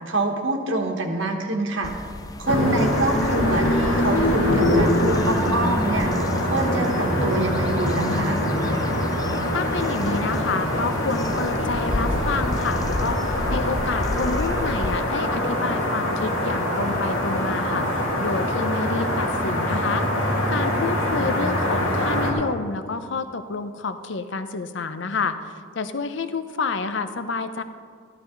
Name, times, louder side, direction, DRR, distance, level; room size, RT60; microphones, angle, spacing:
voice 1, 0.1-1.9 2.4-8.4, right 2 dB, 70° right, 2 dB, 1.4 m, -26 dB
sound 1, 1.8-15.0, left 2 dB, 20° left, 0.3 m, -33 dB
sound 2, 2.5-22.3, left 1 dB, 90° left, 2.1 m, -24 dB
voice 2, 9.5-27.6, left 4 dB, 65° left, 10 dB, 0.6 m, -29 dB
13.0 x 13.0 x 3.9 m, 2.1 s
head